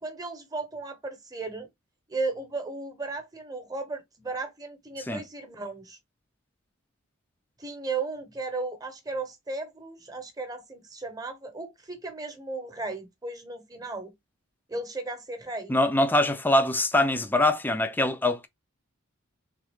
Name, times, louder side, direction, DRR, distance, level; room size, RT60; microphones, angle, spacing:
voice 1, 0.0-1.7 2.1-6.0 7.6-14.1 14.7-15.8, right 3 dB, 15° right, 0.9 m, -35 dB
voice 2, 15.7-18.5, left 1 dB, 10° left, 0.4 m, -23 dB
3.7 x 3.4 x 3.6 m
head